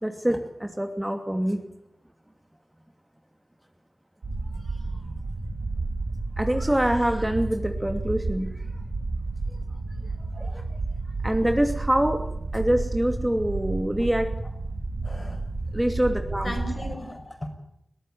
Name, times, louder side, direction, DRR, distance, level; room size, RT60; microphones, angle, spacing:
voice 1, 0.0-1.6 6.4-8.5 10.3-10.6 11.2-12.2 12.5-14.3 15.7-16.6, right 1 dB, 15° right, 5 dB, 2.8 m, -25 dB
sound 1, 4.2-16.9, right 3 dB, 85° right, 5.4 m, -31 dB
voice 2, 15.0-15.4 16.4-17.5, left 1 dB, 35° left, 6 dB, 6.0 m, -35 dB
22.0 x 14.0 x 9.3 m, 0.79 s
cardioid pair, 45°, 0 cm